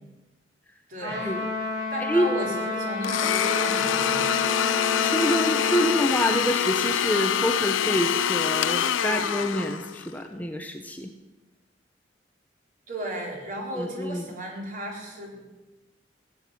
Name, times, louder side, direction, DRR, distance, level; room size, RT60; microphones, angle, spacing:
voice 1, 0.9-1.4 1.9-4.4 12.9-15.4, right 1 dB, 45° right, 0 dB, 3.9 m, -35 dB
Trumpet, 1.0-6.0, left 4 dB, 75° right, 7.0 m, -30 dB
voice 2, 2.0-2.3 5.0-11.1 13.7-14.2, equal, 10° left, 4 dB, 0.9 m, -27 dB
Domestic sounds home sounds, 3.0-10.1, left 8 dB, 85° left, 0.6 m, -25 dB
16.0 x 8.9 x 9.1 m, 1.1 s
head